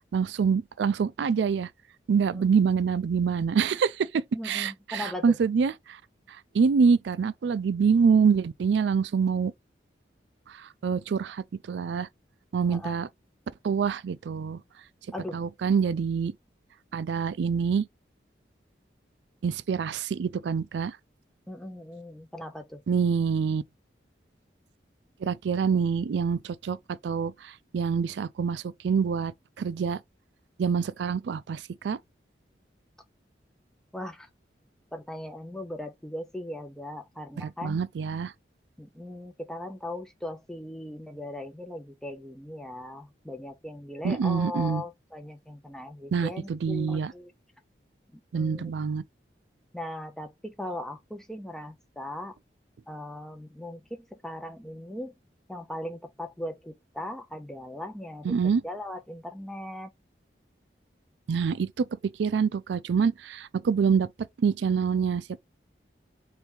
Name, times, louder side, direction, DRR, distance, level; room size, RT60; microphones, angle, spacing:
voice 1, 0.1-1.7 2.1-6.0 6.5-9.5 10.5-12.1 12.5-13.1 13.6-14.6 15.3-16.3 16.9-17.9 19.4-21.0 22.9-23.6 25.2-26.8 27.0-29.3 29.6-30.0 30.6-32.0 37.4-38.3 44.0-44.8 46.1-47.1 48.3-49.0 58.2-58.6 61.3-61.9 62.2-64.1 64.4-65.2, right 6 dB, 80° right, 0.4 m, -26 dB
voice 2, 4.3-5.4 12.7-12.9 15.1-15.4 21.5-22.8 33.9-34.3 34.9-37.8 38.8-47.3 48.3-48.7 49.7-52.4 52.9-55.1 55.5-58.4 58.6-59.9, left 1 dB, 5° left, 0.4 m, -38 dB
4.4 x 2.7 x 3.6 m
head